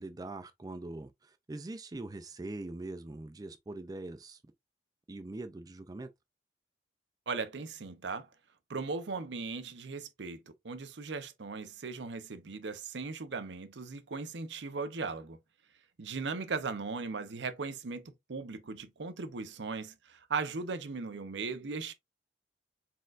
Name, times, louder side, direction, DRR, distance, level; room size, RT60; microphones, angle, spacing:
voice 1, 0.0-4.4 5.1-6.1, right 2 dB, 20° right, 0.4 m, -42 dB
voice 2, 7.3-8.3 8.7-15.4 16.0-21.9, right 4 dB, 70° right, 0.7 m, -38 dB
4.3 x 3.7 x 2.4 m
head